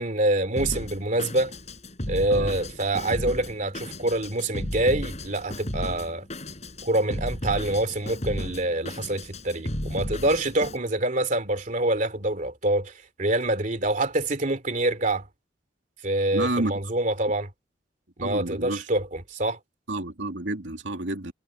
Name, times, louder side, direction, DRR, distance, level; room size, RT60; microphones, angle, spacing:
voice 1, 0.0-1.5 2.1-6.3 6.8-12.9 13.2-15.3 16.0-17.5 18.2-19.6, right 1 dB, 45° right, 3.0 m, -26 dB
Drum kit, 0.6-10.8, left 1 dB, 40° left, 4.9 m, -34 dB
voice 2, 16.3-16.7 18.2-18.9 19.9-21.3, right 2 dB, 85° right, 2.7 m, -30 dB
head